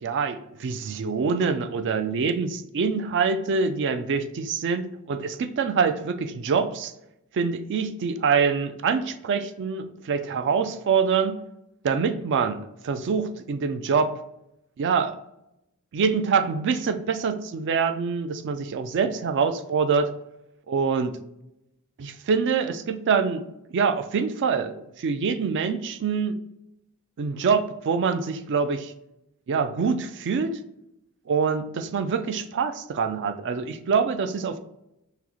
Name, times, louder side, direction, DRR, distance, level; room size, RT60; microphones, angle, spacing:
voice 1, 0.0-6.9 7.3-11.4 11.8-14.1 14.8-15.2 15.9-20.1 20.7-21.2 22.0-23.4 23.7-26.4 27.2-28.9 29.5-30.6 31.3-34.6, right 5 dB, 55° right, 9 dB, 0.4 m, -25 dB
5.8 x 2.0 x 3.0 m, 0.84 s
head